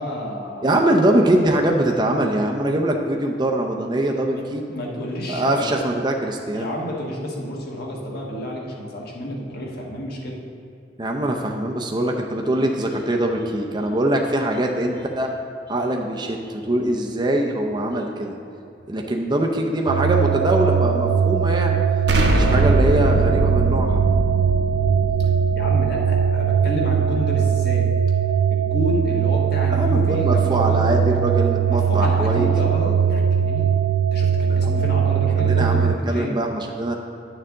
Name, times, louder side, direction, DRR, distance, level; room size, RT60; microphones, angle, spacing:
voice 1, 0.0-1.5 4.2-4.4 4.7-5.8 6.5-10.4 25.2-25.3 25.5-27.9 28.5-30.9 31.7-33.6 34.1-36.4, equal, 60° left, -2 dB, 1.4 m, -30 dB
voice 2, 0.6-4.6 5.3-6.7 11.0-15.3 15.7-18.4 18.9-21.8 22.3-24.0 29.7-32.5 34.5-34.8 35.4-37.0, right 1 dB, 25° right, 1 dB, 0.5 m, -22 dB
sound 1, 19.9-36.0, right 7 dB, 85° right, 0.3 m, -20 dB
Explosion, 22.1-26.9, equal, 65° right, 1.0 m, -23 dB
10.0 x 6.7 x 3.7 m, 2.6 s
head